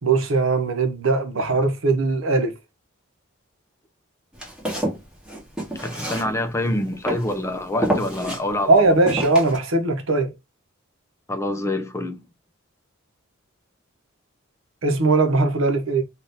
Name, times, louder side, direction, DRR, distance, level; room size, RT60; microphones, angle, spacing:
voice 1, 0.0-2.5 8.7-10.3 14.8-16.0, right 3 dB, 70° right, 0.8 m, -20 dB
Walk footsteps, 4.3-6.7 7.1-7.4 7.8-8.4 9.1-9.6, right 1 dB, 5° right, 1.0 m, -27 dB
voice 2, 5.7-9.0 11.3-12.2, left 1 dB, 15° left, 0.5 m, -26 dB
2.8 x 2.4 x 3.5 m
head